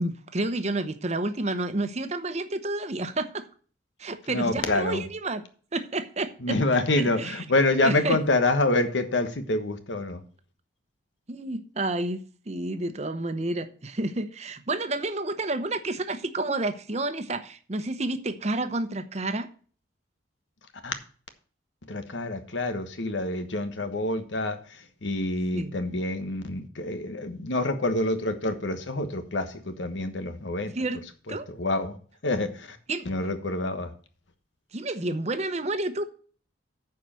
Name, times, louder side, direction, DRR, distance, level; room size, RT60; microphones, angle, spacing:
voice 1, 0.0-3.5 4.0-5.4 5.7-6.6 6.9-7.4 7.8-8.2 11.3-12.2 12.5-19.5 25.5-25.8 30.7-31.0 31.3-31.5 32.9-33.1 34.7-36.1, right 2 dB, 35° right, 10 dB, 0.9 m, -30 dB
voice 2, 4.3-5.0 6.4-10.2 20.8-20.9 21.9-30.7 31.3-32.0 32.2-32.8 33.0-33.9, left 2 dB, 90° left, 9 dB, 1.3 m, -27 dB
9.2 x 4.8 x 7.5 m, 0.42 s
head